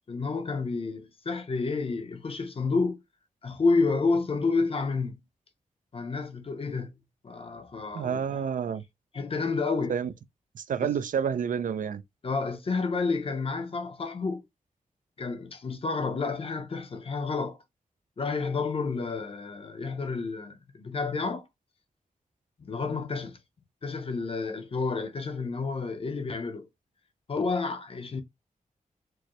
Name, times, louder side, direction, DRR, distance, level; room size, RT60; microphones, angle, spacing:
voice 1, 0.1-3.0 3.4-5.2 5.9-8.4 9.1-9.9 10.8-10.9 12.2-14.4 15.2-17.6 18.2-21.5 22.6-23.4 23.8-26.7 27.3-28.2, left 4 dB, 40° left, 0.6 m, -30 dB
voice 2, 7.9-8.8 9.9-10.1 10.5-12.0, right 7 dB, 70° right, 0.4 m, -29 dB
4.5 x 2.0 x 3.0 m
wide cardioid pair, 140°, 14 cm